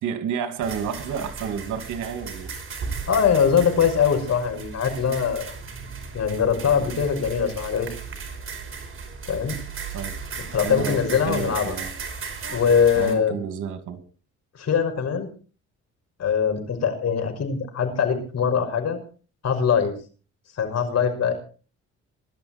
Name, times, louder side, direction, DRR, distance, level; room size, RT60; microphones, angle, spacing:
voice 1, 0.0-2.5 6.8-6.9 9.9-10.2 10.6-11.9 13.0-14.0, right 7 dB, 85° right, 2.6 m, -30 dB
sound 1, 0.6-13.1, right 5 dB, 45° right, 5.0 m, -36 dB
voice 2, 3.1-5.5 6.1-7.9 9.3-9.6 10.4-11.8 12.5-13.4 14.6-15.3 16.2-19.0 19.4-19.9 20.6-21.3, left 7 dB, 55° left, 6.0 m, -22 dB
20.5 x 12.5 x 4.4 m
cardioid pair, 90°, 30 cm